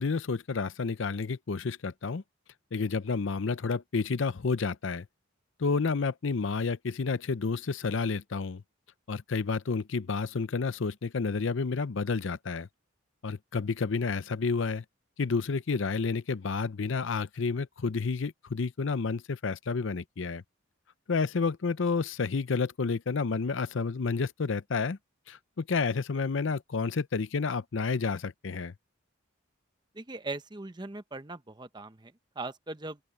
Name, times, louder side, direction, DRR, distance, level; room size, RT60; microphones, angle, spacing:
voice 1, 0.0-2.2 2.7-5.1 5.6-8.6 9.1-12.7 13.2-14.8 15.2-20.4 21.1-25.0 25.3-28.7, left 4 dB, 65° left, 0.6 m, -30 dB
voice 2, 29.9-33.0, right 2 dB, 20° right, 0.8 m, -40 dB
open air
head